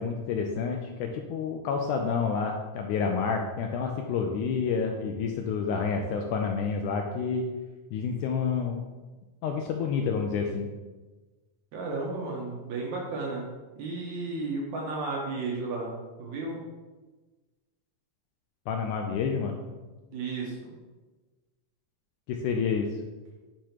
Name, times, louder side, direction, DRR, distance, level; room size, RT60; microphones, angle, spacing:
voice 1, 0.0-7.5 7.9-8.8 9.4-10.7 18.7-19.7 22.3-22.9, left 5 dB, 80° left, 2 dB, 1.8 m, -29 dB
voice 2, 11.7-13.5 13.8-16.6 20.1-20.6, right 3 dB, 70° right, -2 dB, 2.2 m, -33 dB
9.1 x 4.7 x 2.9 m, 1.2 s
omnidirectional pair, 3.9 m